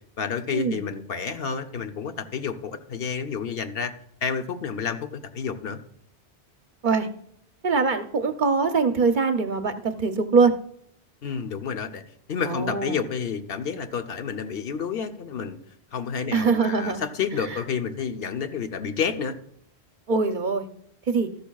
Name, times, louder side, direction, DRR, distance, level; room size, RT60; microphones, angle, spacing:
voice 1, 0.2-3.9 4.2-5.8 11.2-12.0 12.3-15.6 15.9-19.4, left 6 dB, 65° left, 7 dB, 1.0 m, -30 dB
voice 2, 7.6-10.5 12.4-13.0 16.3-17.0 17.5-17.6 20.1-20.7 21.1-21.3, right 4 dB, 55° right, 8 dB, 0.7 m, -23 dB
13.5 x 12.0 x 2.3 m, 0.68 s
omnidirectional pair, 1.1 m